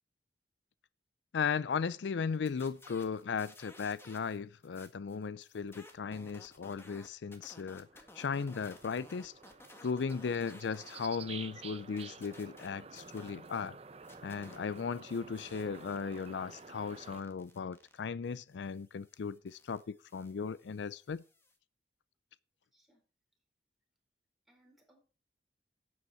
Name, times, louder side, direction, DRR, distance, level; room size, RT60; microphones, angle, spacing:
voice 1, 1.3-7.9 8.2-9.3 9.8-13.8 14.2-21.2, left 5 dB, 85° left, 0.4 m, -36 dB
sound 1, 2.3-4.4 4.6-11.1 11.4-13.7 14.0-21.6, left 1 dB, 15° left, 1.7 m, -57 dB
sound 2, 7.3-17.2, right 5 dB, 35° right, 0.6 m, -51 dB
voice 2, 22.7-23.0 24.5-25.0, right 1 dB, ahead, 4.2 m, -67 dB
11.5 x 8.5 x 4.4 m
head